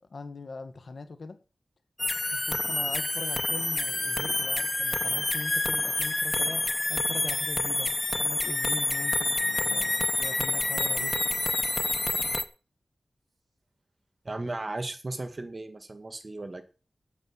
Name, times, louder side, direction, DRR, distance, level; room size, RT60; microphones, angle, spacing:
voice 1, 0.1-1.4 2.3-11.2, left 3 dB, 70° left, 1.6 m, -41 dB
sound 1, 2.0-12.4, left 2 dB, 30° left, 1.2 m, -28 dB
voice 2, 14.2-16.6, right 2 dB, 40° right, 2.1 m, -36 dB
8.7 x 8.6 x 8.9 m
wide cardioid pair, 95°, 0 cm